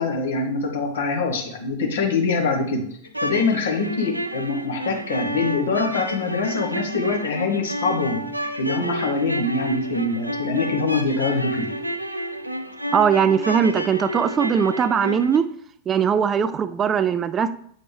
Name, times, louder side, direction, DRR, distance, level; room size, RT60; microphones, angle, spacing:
voice 1, 0.0-2.8 3.2-8.2 8.6-11.7, left 3 dB, 60° left, 3 dB, 1.2 m, -24 dB
sound 1, 3.1-15.4, equal, 85° right, 0.5 m, -30 dB
voice 2, 12.9-15.5 15.9-17.5, right 7 dB, 25° right, 14 dB, 0.3 m, -20 dB
8.3 x 4.2 x 3.3 m, 0.63 s
figure-of-eight pair, 90°, 0 cm